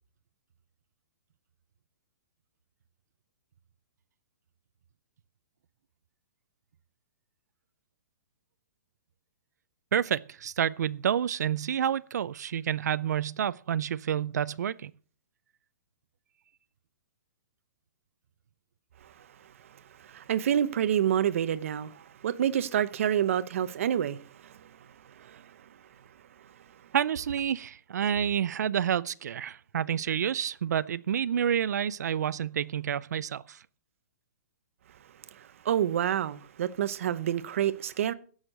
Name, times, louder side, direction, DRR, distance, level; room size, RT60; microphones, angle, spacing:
voice 1, 9.9-14.9 26.9-33.6, right 9 dB, 75° right, 0.5 m, -29 dB
voice 2, 20.0-24.7 25.2-25.5 35.3-38.1, right 10 dB, 50° right, 0.8 m, -28 dB
16.0 x 6.5 x 6.5 m
hypercardioid pair, 175°, 9 cm